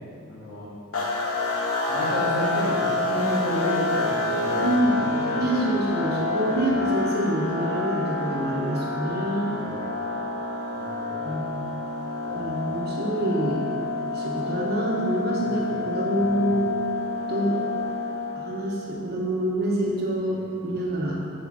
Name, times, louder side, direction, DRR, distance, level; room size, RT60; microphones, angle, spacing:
voice 1, 0.3-0.7 1.9-5.6 6.4-6.8 9.7-9.9 10.7-11.2 12.3-12.5 15.3-15.8 16.1-16.5 20.3-20.5, equal, 50° left, -11 dB, 1.7 m, -32 dB
sound 1, 0.9-18.8, left 2 dB, 75° left, 1.2 m, -28 dB
voice 2, 4.5-5.0 5.4-9.6 11.2-11.6 12.3-13.7 14.1-16.7 17.3-17.6 18.4-21.2, right 1 dB, 45° right, -3 dB, 1.2 m, -26 dB
8.3 x 4.9 x 6.2 m, 2.6 s
head